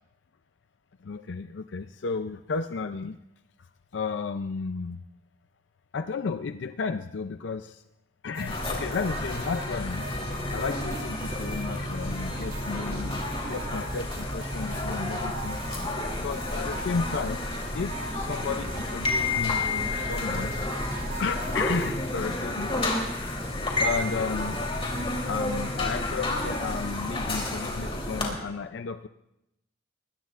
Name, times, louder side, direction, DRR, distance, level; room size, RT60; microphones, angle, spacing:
voice 1, 1.0-3.2 3.9-5.0 5.9-7.8 8.2-10.1 10.5-13.2 13.5-15.6 16.2-17.5 17.7-20.5 21.2-22.7 23.7-24.6 25.3-29.1, left 5 dB, 85° left, 10 dB, 0.5 m, -33 dB
sound 1, 8.3-21.9, right 3 dB, 55° right, 2.5 m, -41 dB
sound 2, 8.5-28.3, left 2 dB, 30° left, 3.3 m, -31 dB
21.0 x 19.5 x 2.5 m, 0.87 s
head